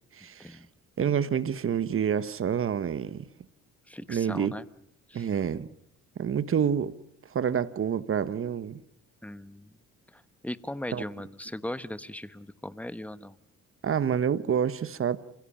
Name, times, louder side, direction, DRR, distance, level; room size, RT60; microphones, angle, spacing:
voice 1, 0.2-0.6 1.0-3.2 4.1-4.5 5.1-5.7 6.2-6.9 7.3-8.8 10.9-11.0 13.8-15.2, right 8 dB, 45° right, 1.1 m, -28 dB
voice 2, 3.9-4.7 5.1-5.3 9.2-9.7 10.1-13.4, left 1 dB, 5° left, 1.0 m, -38 dB
27.5 x 16.5 x 8.7 m
cardioid pair, 90°, 30 cm